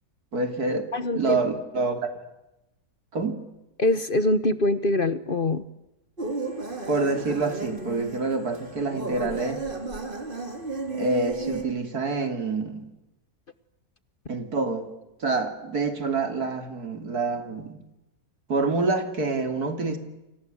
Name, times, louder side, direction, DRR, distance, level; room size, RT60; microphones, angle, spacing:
voice 1, 0.3-2.1 3.1-3.4 6.9-9.6 10.9-12.9 14.3-14.9 15.2-17.8 18.5-20.0, right 3 dB, 75° right, 7 dB, 3.6 m, -27 dB
voice 2, 0.9-1.4 3.8-5.7, left 2 dB, 40° left, 13 dB, 1.2 m, -23 dB
sound 1, 6.2-11.6, right 3 dB, 35° right, 3.7 m, -34 dB
29.5 x 25.5 x 8.0 m, 0.94 s
omnidirectional pair, 1.6 m